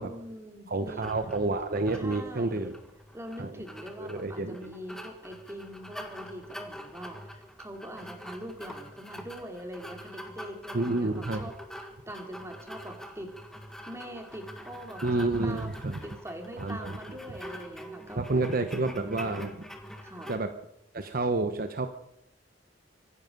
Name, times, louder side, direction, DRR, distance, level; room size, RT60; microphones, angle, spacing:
voice 1, 0.0-1.1 1.9-2.7 3.1-11.5 12.1-13.3 13.8-18.2 19.0-19.5 20.0-20.3, equal, 15° right, 4 dB, 2.8 m, -43 dB
voice 2, 0.7-2.8 3.4-3.5 4.0-4.7 10.7-11.5 15.0-16.0 16.6-17.0 18.2-19.5 20.3-20.5 20.9-21.9, right 2 dB, 50° right, 8 dB, 0.9 m, -29 dB
sound 1, 1.0-20.4, equal, 5° left, 1.6 m, -45 dB
24.5 x 11.0 x 5.3 m, 0.82 s
head